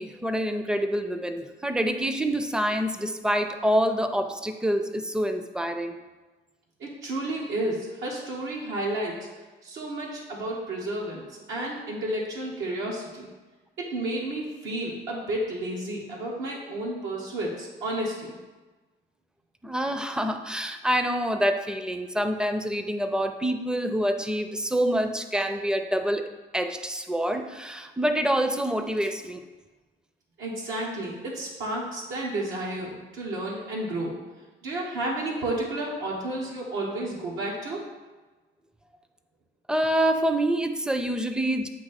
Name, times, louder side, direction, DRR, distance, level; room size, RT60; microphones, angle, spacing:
voice 1, 0.0-6.0 19.6-29.4 39.7-41.7, equal, 5° right, 7 dB, 0.4 m, -26 dB
voice 2, 6.8-9.3 9.6-13.3 13.8-18.4 30.4-34.1 34.6-37.8, right 1 dB, 90° right, -3 dB, 1.1 m, -31 dB
8.2 x 2.8 x 4.1 m, 1.2 s
cardioid pair, 90°, 20 cm